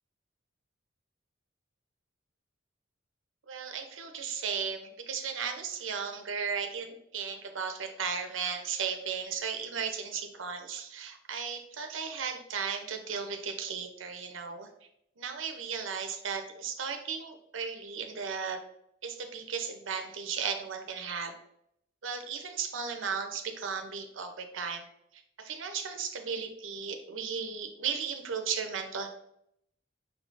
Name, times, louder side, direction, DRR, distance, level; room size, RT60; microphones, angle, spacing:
voice 1, 3.5-6.9 7.1-14.7 15.2-18.6 19.0-21.3 22.0-24.8 25.4-29.1, right 6 dB, 70° right, 6 dB, 0.7 m, -35 dB
5.8 x 3.6 x 2.5 m, 0.74 s
head